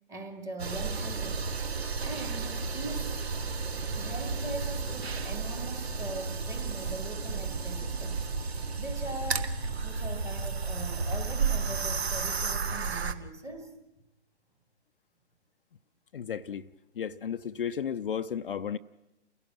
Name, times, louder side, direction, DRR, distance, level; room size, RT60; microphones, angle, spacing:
voice 1, 0.1-1.5 2.0-3.4 3.9-9.4 9.8-13.7, right 2 dB, 10° right, 6 dB, 1.5 m, -41 dB
sound 1, 0.6-13.1, right 4 dB, 65° right, 1.5 m, -32 dB
voice 2, 16.1-16.6 17.0-18.8, left 8 dB, 50° left, 9 dB, 0.6 m, -33 dB
29.5 x 16.5 x 6.2 m, 0.98 s
figure-of-eight pair, 140°, 35 cm